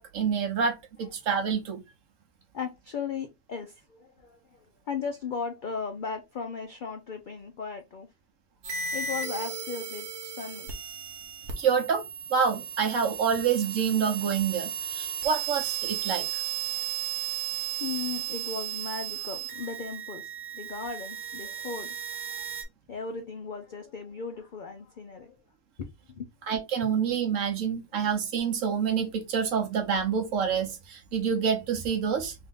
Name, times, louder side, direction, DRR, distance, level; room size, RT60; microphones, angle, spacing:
voice 1, 0.0-1.8 11.6-12.0 12.3-16.3 26.5-32.4, right 6 dB, 65° right, 1.2 m, -27 dB
voice 2, 2.5-8.1 8.9-10.7 16.7-16.9 17.8-22.5 22.9-25.4 25.8-26.3, left 5 dB, 80° left, 0.4 m, -37 dB
sound 1, 8.6-22.6, right 8 dB, 80° right, 1.4 m, -35 dB
3.5 x 2.7 x 3.6 m
omnidirectional pair, 1.5 m